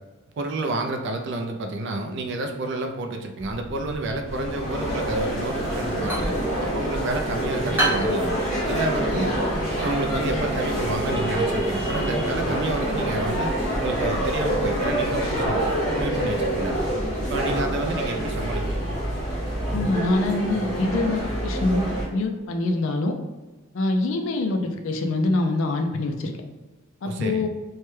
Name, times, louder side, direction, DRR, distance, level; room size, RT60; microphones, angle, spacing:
voice 1, 0.4-8.3 8.7-9.3 9.7-15.6 16.0-16.8 17.3-19.0 27.0-27.5, right 2 dB, 55° right, 4 dB, 0.4 m, -30 dB
sound 1, 3.4-20.0, equal, 90° right, 0.9 m, -41 dB
sound 2, 4.3-22.0, right 1 dB, 35° left, 1.1 m, -26 dB
sound 3, 5.7-13.2, right 1 dB, 10° right, 0.8 m, -34 dB
voice 2, 19.7-23.2 23.7-26.3 27.0-27.5, left 2 dB, 65° left, 5 dB, 0.4 m, -24 dB
3.2 x 2.1 x 3.1 m, 1.2 s
head